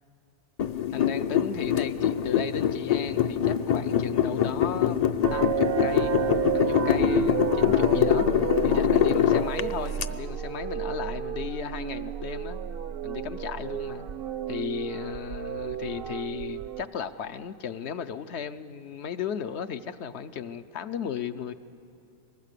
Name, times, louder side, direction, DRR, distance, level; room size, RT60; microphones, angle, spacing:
sound 1, 0.6-10.1, left 9 dB, 50° left, 0.5 m, -24 dB
voice 1, 0.9-5.0 5.3-6.2 6.5-8.3 8.6-12.6 13.0-14.0 14.5-21.5, left 8 dB, 75° left, 9 dB, 1.0 m, -35 dB
sound 2, 5.2-16.8, right 10 dB, 60° right, 0.8 m, -32 dB
24.0 x 20.0 x 6.7 m, 2.8 s
omnidirectional pair, 1.2 m